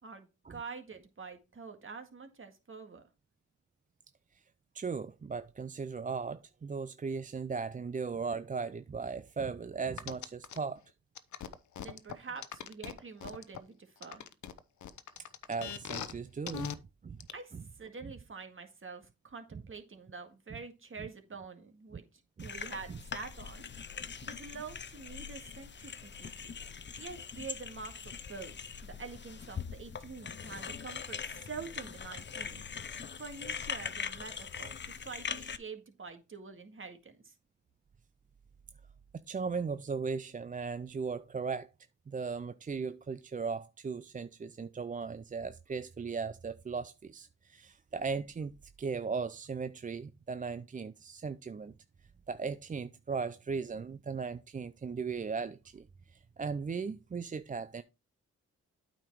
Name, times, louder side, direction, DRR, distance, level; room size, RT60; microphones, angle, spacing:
voice 1, 0.0-3.0 11.8-14.3 17.3-23.6 24.2-26.6 27.0-32.6 33.2-37.3, right 5 dB, 45° right, 2.0 m, -46 dB
voice 2, 4.7-10.8 15.5-16.7 17.0-17.2 17.5-17.6 18.0-18.1 22.4-22.5 22.9-23.0 39.1-41.7 42.1-48.5 48.8-51.7 52.3-57.8, right 5 dB, 25° right, 0.5 m, -37 dB
sound 1, 10.0-10.6 11.1-13.6 14.0-16.1 16.5-16.7 17.2-17.3, left 9 dB, 70° left, 0.8 m, -40 dB
sound 2, 22.4-35.6, left 6 dB, 35° left, 0.7 m, -42 dB
8.8 x 5.1 x 4.6 m
cardioid pair, 55°, 30 cm